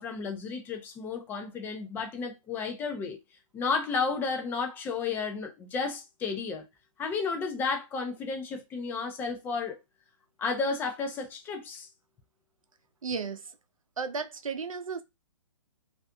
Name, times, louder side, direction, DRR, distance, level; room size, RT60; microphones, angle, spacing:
voice 1, 0.0-3.2 3.5-6.6 7.0-9.8 10.4-11.9, left 4 dB, 10° left, 0.4 m, -32 dB
voice 2, 13.0-13.4 14.0-15.0, right 5 dB, 75° right, 0.5 m, -34 dB
2.5 x 2.4 x 2.3 m
figure-of-eight pair, 120°, 17 cm